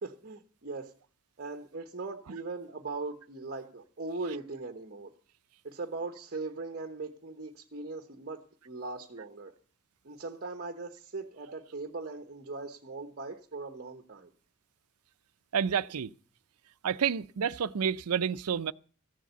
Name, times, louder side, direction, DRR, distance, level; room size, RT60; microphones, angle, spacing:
voice 1, 0.0-0.9 1.4-5.1 5.6-9.5 10.0-14.3, right 3 dB, 45° right, 1.1 m, -39 dB
voice 2, 15.5-16.1 16.8-18.7, right 7 dB, 90° right, 0.5 m, -29 dB
14.5 x 7.5 x 8.0 m
head